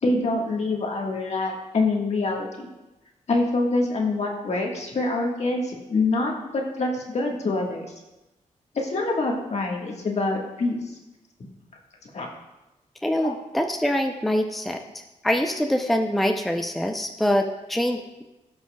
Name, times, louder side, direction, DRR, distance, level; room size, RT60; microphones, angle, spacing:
voice 1, 0.0-2.7 3.3-7.9 8.7-10.8 12.1-12.3 13.2-13.3, left 2 dB, 60° left, 0 dB, 1.5 m, -25 dB
voice 2, 13.0-14.8 15.2-18.2, equal, ahead, 4 dB, 0.5 m, -24 dB
16.0 x 5.5 x 2.3 m, 1.0 s
cardioid pair, 90°, 13 cm